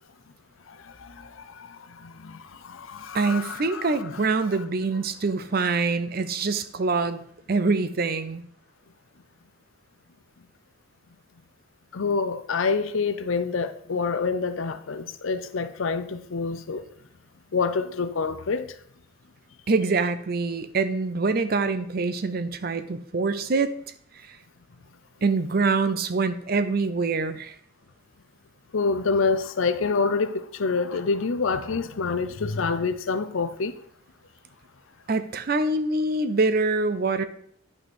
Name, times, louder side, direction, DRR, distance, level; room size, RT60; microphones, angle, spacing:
voice 1, 1.9-3.9 11.9-16.8 17.5-18.7 28.7-33.7, left 4 dB, 75° left, 0.6 m, -27 dB
voice 2, 3.1-7.2 7.5-8.4 19.7-23.7 25.2-27.5 35.1-37.2, right 3 dB, 45° right, 0.5 m, -25 dB
9.4 x 5.6 x 4.3 m
head